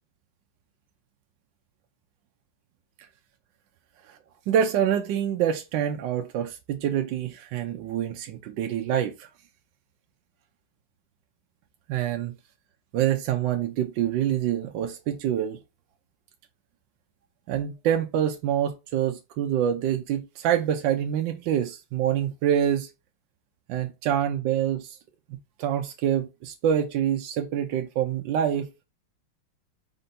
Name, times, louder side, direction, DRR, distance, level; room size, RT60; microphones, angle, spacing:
voice 1, 4.5-9.3 11.9-12.3 12.9-15.6 17.5-22.9 23.7-25.0 25.6-28.7, right 10 dB, 75° right, 1.1 m, -26 dB
4.4 x 2.6 x 4.1 m
omnidirectional pair, 2.3 m